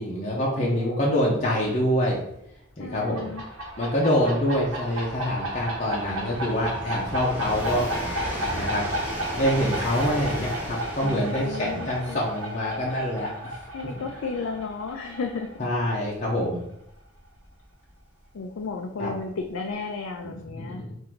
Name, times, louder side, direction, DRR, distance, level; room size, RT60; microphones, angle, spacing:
voice 1, 0.0-2.2 2.8-3.3 3.8-7.8 8.6-8.9 9.4-13.5 15.6-16.6 19.0-19.2 20.2-20.9, equal, 35° left, -4 dB, 0.7 m, -26 dB
voice 2, 0.5-1.6 2.8-3.4 11.0-12.2 13.7-15.5 18.3-20.8, left 4 dB, 85° left, 2 dB, 0.4 m, -34 dB
Train, 1.3-1.4 1.6-18.2 19.2-19.3, equal, 10° right, 0.9 m, -37 dB
sound 1, 3.0-16.3, right 1 dB, 85° right, 1.0 m, -34 dB
3.8 x 2.6 x 4.4 m, 0.78 s
head